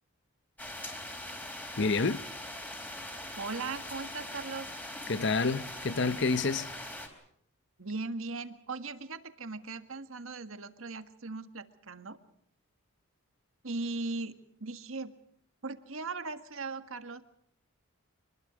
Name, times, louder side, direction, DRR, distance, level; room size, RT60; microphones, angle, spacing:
sound 1, 0.6-7.1, left 1 dB, 10° left, 3.7 m, -42 dB
voice 1, 1.8-2.2 5.1-6.7, left 4 dB, 55° left, 0.8 m, -28 dB
voice 2, 3.4-4.7 7.8-12.2 13.6-15.1 15.6-17.2, right 3 dB, 70° right, 1.7 m, -38 dB
26.0 x 21.0 x 6.3 m
head